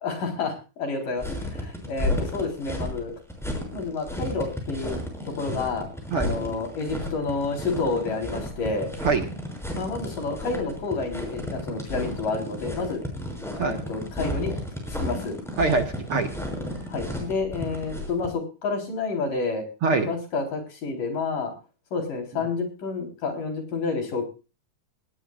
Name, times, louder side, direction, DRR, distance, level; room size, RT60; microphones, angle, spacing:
voice 1, 0.0-3.1 3.7-8.9 9.7-13.0 13.6-14.6 15.0-15.4 16.9-21.5 21.9-24.3, left 4 dB, 75° left, 4 dB, 5.6 m, -29 dB
sound 1, 1.2-18.3, left 1 dB, ahead, 6.0 m, -33 dB
voice 2, 15.6-16.3 19.8-20.1, right 4 dB, 50° right, 5 dB, 2.0 m, -23 dB
19.0 x 17.5 x 2.5 m, 0.32 s
omnidirectional pair, 3.8 m